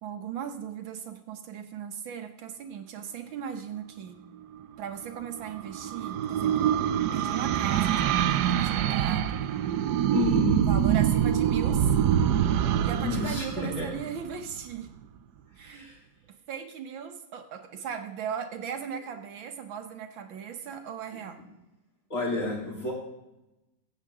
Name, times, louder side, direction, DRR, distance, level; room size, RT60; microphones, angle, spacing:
voice 1, 0.0-4.2 4.8-6.8 7.1-9.8 10.6-11.9 12.8-14.9 15.6-15.9 16.5-21.4, right 8 dB, 90° right, 6 dB, 1.9 m, -38 dB
sound 1, 5.0-14.6, right 10 dB, 70° right, 1.1 m, -25 dB
voice 2, 10.1-10.6 13.0-13.9 15.6-16.0 22.1-22.9, left 3 dB, 40° left, -4 dB, 3.6 m, -30 dB
14.5 x 8.2 x 3.7 m, 0.95 s
omnidirectional pair, 2.1 m